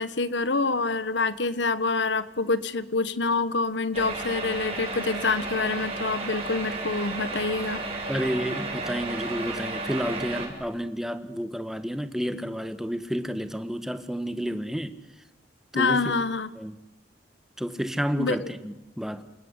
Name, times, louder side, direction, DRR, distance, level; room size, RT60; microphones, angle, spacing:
voice 1, 0.0-7.8 15.7-16.5 18.2-18.5, left 3 dB, 80° left, 1.4 m, -26 dB
sound 1, 3.9-10.5, right 2 dB, 30° right, 7.5 m, -33 dB
voice 2, 8.1-15.0 15.7-16.2 16.6-16.8 17.6-19.2, equal, ahead, 1.5 m, -30 dB
29.0 x 19.0 x 9.8 m
head